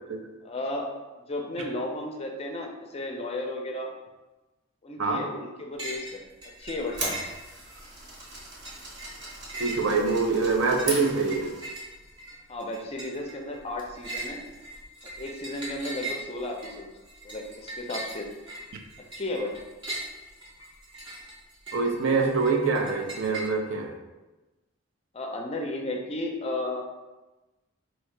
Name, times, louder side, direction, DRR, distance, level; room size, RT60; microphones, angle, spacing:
voice 1, 0.4-0.9 1.3-3.9 4.8-6.2 6.6-7.2 12.5-14.4 15.2-16.9 17.2-18.3 19.1-19.6 25.1-26.8, left 1 dB, 30° left, 2 dB, 0.4 m, -34 dB
sound 1, 5.8-6.2 6.4-7.8 8.2-23.5, right 2 dB, 25° right, 0.7 m, -40 dB
sound 2, 6.6-11.7, right 2 dB, 50° right, 1.0 m, -38 dB
voice 2, 9.6-11.5 21.7-23.9, right 4 dB, 70° right, 3 dB, 0.5 m, -25 dB
2.8 x 2.8 x 4.4 m, 1.1 s
head